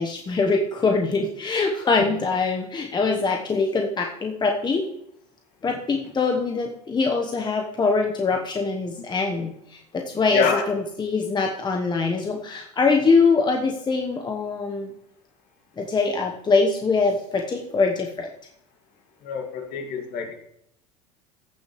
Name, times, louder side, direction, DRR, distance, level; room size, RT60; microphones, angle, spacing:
voice 1, 0.0-4.9 5.6-14.9 15.8-18.3, left 4 dB, 25° left, 2 dB, 1.1 m, -23 dB
voice 2, 10.3-10.6 19.2-20.3, left 5 dB, 55° left, 2 dB, 2.3 m, -26 dB
15.5 x 6.6 x 3.2 m, 0.74 s
hypercardioid pair, 85°, 18 cm